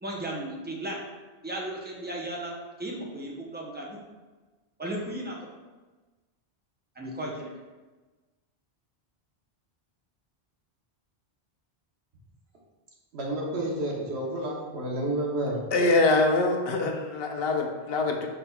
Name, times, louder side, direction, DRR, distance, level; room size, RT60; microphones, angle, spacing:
voice 1, 0.0-1.0 1.4-2.5 2.8-4.0 4.8-5.5 6.9-7.5, right 1 dB, 10° right, -2 dB, 0.5 m, -35 dB
voice 2, 13.1-15.6, right 1 dB, 85° right, -2 dB, 1.2 m, -30 dB
voice 3, 15.7-18.3, left 2 dB, 70° left, 3 dB, 0.8 m, -24 dB
5.2 x 4.3 x 2.3 m, 1.2 s
omnidirectional pair, 1.1 m